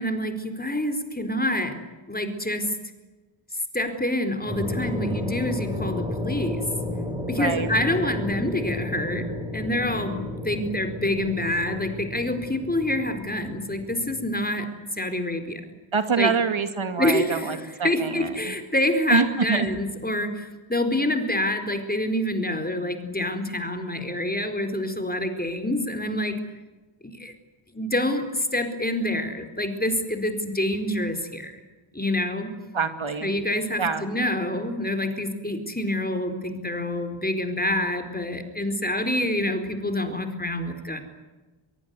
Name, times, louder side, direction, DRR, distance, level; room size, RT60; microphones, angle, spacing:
voice 1, 0.0-1.8 2.1-2.7 3.7-6.6 7.3-9.3 9.5-14.7 14.9-15.6 16.2-16.3 17.0-26.3 27.0-27.3 27.7-31.6 31.9-32.5 33.2-41.0, left 1 dB, 20° left, 7 dB, 4.4 m, -27 dB
sound 1, 4.4-14.3, left 1 dB, 10° right, 6.4 m, -32 dB
voice 2, 7.3-7.7 15.9-18.5 19.1-19.7 32.7-33.3 33.8-34.0, right 5 dB, 70° right, 9 dB, 2.4 m, -25 dB
24.0 x 23.0 x 9.6 m, 1.2 s
wide cardioid pair, 95°, 49 cm